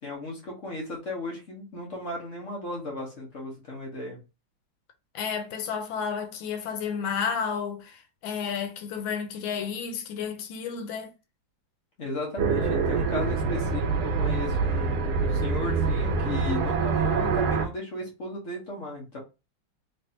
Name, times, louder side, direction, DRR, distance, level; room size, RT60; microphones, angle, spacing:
voice 1, 0.0-4.2 12.0-19.2, left 2 dB, 45° left, 1.3 m, -35 dB
voice 2, 5.1-11.1, left 6 dB, 85° left, 1.5 m, -31 dB
sound 1, 12.4-17.7, right 4 dB, 70° right, 1.1 m, -25 dB
3.3 x 3.3 x 2.8 m
omnidirectional pair, 2.1 m